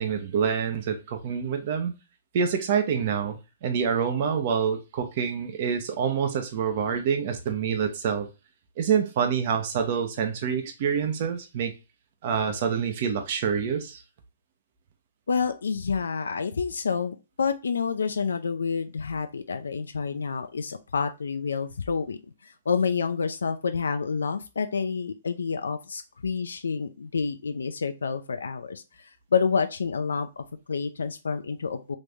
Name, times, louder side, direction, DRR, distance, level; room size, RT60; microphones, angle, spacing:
voice 1, 0.0-1.9 2.3-8.3 8.8-11.7 12.2-14.0, right 7 dB, 45° right, 0.8 m, -26 dB
voice 2, 15.3-32.0, left 5 dB, 85° left, 0.4 m, -29 dB
3.1 x 2.6 x 3.4 m
hypercardioid pair, 140°, 0 cm